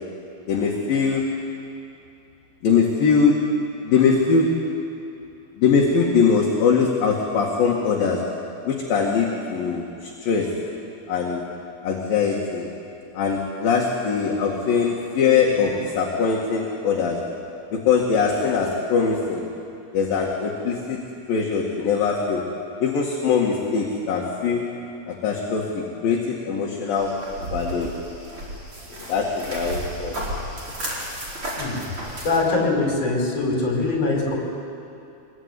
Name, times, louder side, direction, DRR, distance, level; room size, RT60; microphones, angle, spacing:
voice 1, 0.5-1.2 2.6-3.4 3.8-4.5 5.6-8.2 8.6-10.5 11.1-11.4 11.8-12.7 13.1-17.2 17.7-19.4 19.9-21.0 21.3-22.4 22.8-24.6 25.1-27.1 27.4-27.9 29.1-30.2, left 5 dB, 55° left, -1 dB, 3.4 m, -22 dB
sound 1, 27.0-32.4, right 1 dB, 30° right, 5.2 m, -33 dB
voice 2, 32.2-34.4, left 3 dB, 35° left, 0 dB, 5.5 m, -22 dB
25.0 x 22.0 x 9.8 m, 2.7 s
omnidirectional pair, 5.4 m